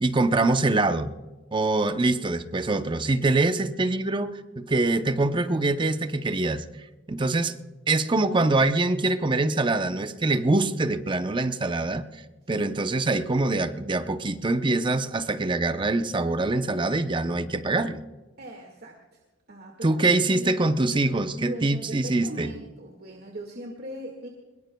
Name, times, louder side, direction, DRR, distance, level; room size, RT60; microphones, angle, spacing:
voice 1, 0.0-1.1 1.5-6.6 7.1-7.5 7.9-12.0 12.5-18.0 19.8-22.5, right 2 dB, 25° right, 10 dB, 0.6 m, -24 dB
voice 2, 12.5-13.0 18.4-19.2 19.5-20.7 21.4-24.3, right 1 dB, 55° right, 1 dB, 1.9 m, -40 dB
21.5 x 21.0 x 2.3 m, 1.2 s
head